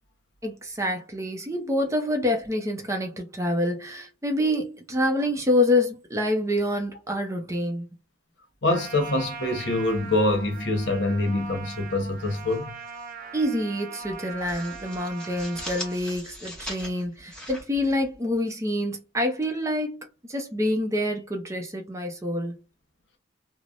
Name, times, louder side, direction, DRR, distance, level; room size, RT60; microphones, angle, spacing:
voice 1, 0.4-7.9 13.3-22.5, left 1 dB, 15° right, 0.5 m, -27 dB
voice 2, 8.6-12.7, left 2 dB, 65° left, 0.9 m, -25 dB
Trumpet, 8.7-16.0, right 5 dB, 50° right, 0.8 m, -40 dB
sound 1, 12.2-13.1 13.4-13.6 14.0-18.5, left 1 dB, 5° left, 0.9 m, -41 dB
3.2 x 2.1 x 2.4 m
head